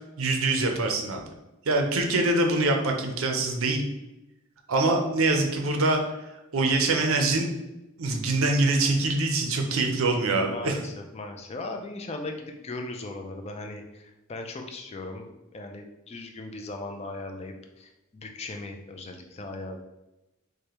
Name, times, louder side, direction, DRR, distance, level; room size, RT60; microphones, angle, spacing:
voice 1, 0.2-1.2 1.7-3.8 4.7-6.0 6.5-7.5 8.0-10.8, right 2 dB, 70° right, 3 dB, 0.6 m, -24 dB
voice 2, 10.4-19.8, left 2 dB, 30° left, 4 dB, 0.4 m, -38 dB
4.8 x 2.2 x 2.9 m, 0.98 s
head